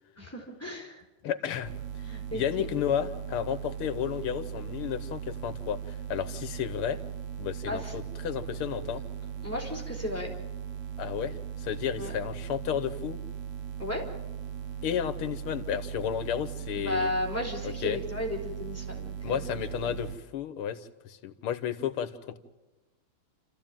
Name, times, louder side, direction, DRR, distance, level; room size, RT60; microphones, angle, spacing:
voice 1, 0.2-1.0 2.0-2.7 7.7-8.0 9.4-10.3 12.0-12.1 13.8-14.1 16.7-19.4 19.8-20.0, left 1 dB, 5° left, 1 dB, 4.0 m, -34 dB
voice 2, 1.2-2.0 2.3-7.0 7.4-9.0 11.0-13.2 14.8-17.1 17.6-18.0 19.2-22.4, left 9 dB, 90° left, 12 dB, 2.0 m, -32 dB
sound 1, 1.6-20.2, right 8 dB, 40° right, 1.0 m, -38 dB
29.0 x 14.5 x 9.0 m, 1.1 s
omnidirectional pair, 2.3 m